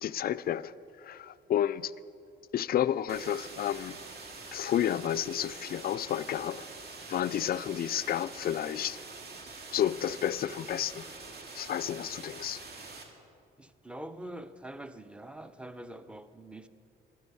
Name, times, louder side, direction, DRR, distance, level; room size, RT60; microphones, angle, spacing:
voice 1, 0.0-1.9 2.5-4.0 4.5-6.7 7.1-9.0 9.7-11.1 11.6-12.6, left 10 dB, 50° left, 0.4 m, -31 dB
sound 1, 3.1-13.0, right 3 dB, 55° right, 2.2 m, -45 dB
voice 2, 13.6-16.7, right 1 dB, 5° right, 0.6 m, -44 dB
12.0 x 12.0 x 5.5 m
cardioid pair, 90°, 20 cm